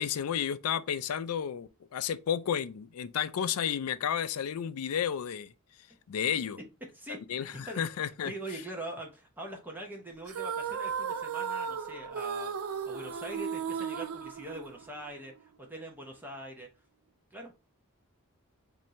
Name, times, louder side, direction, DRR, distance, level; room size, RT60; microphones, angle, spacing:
voice 1, 0.0-5.5 6.1-6.6 7.1-8.3, left 8 dB, 80° left, 0.4 m, -32 dB
voice 2, 6.9-7.8 8.2-12.5 12.8-16.7 17.3-17.5, right 1 dB, 10° right, 0.9 m, -43 dB
sound 1, 10.3-15.1, right 6 dB, 70° right, 0.4 m, -35 dB
4.3 x 2.7 x 3.0 m
head